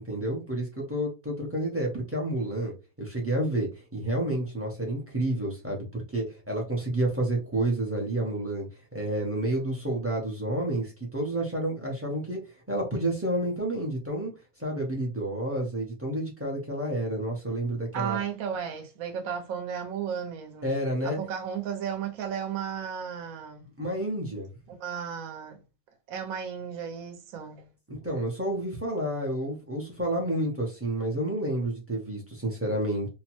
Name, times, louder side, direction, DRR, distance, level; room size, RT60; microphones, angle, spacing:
voice 1, 0.0-12.4 12.7-14.3 14.6-18.2 20.6-21.2 23.8-24.5 27.9-33.1, right 1 dB, 20° right, 0.4 m, -30 dB
voice 2, 17.9-20.8 21.0-23.7 24.8-25.6 26.1-27.7, right 8 dB, 70° right, 1.1 m, -34 dB
2.8 x 2.1 x 2.9 m
omnidirectional pair, 1.6 m